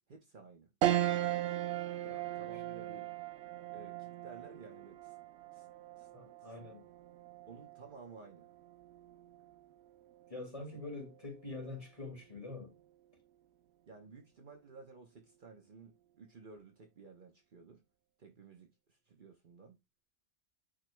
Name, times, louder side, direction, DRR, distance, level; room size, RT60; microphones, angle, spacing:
voice 1, 0.1-0.7 2.3-3.1 3.7-5.2 5.5-5.7 6.0-6.1 6.4-6.5 7.5-8.5 13.9-17.8 18.2-19.8, right 4 dB, 50° right, 1.0 m, -54 dB
sound 1, 0.8-10.4 10.9-11.0 12.3-12.8, right 13 dB, 75° right, 0.8 m, -38 dB
voice 2, 6.1-6.9 10.3-12.7, left 2 dB, 30° left, 2.3 m, -45 dB
9.0 x 5.1 x 2.2 m
omnidirectional pair, 1.2 m